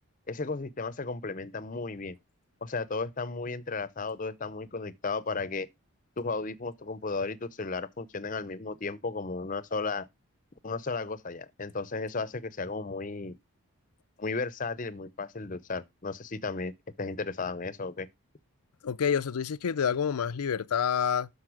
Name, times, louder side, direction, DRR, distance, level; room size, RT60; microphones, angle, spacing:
voice 1, 0.3-2.2 2.6-5.7 6.2-10.1 10.6-13.4 14.2-16.7 17.0-18.1, left 3 dB, 35° left, 0.6 m, -34 dB
voice 2, 18.8-21.3, left 7 dB, 85° left, 0.5 m, -28 dB
12.5 x 5.3 x 4.9 m
head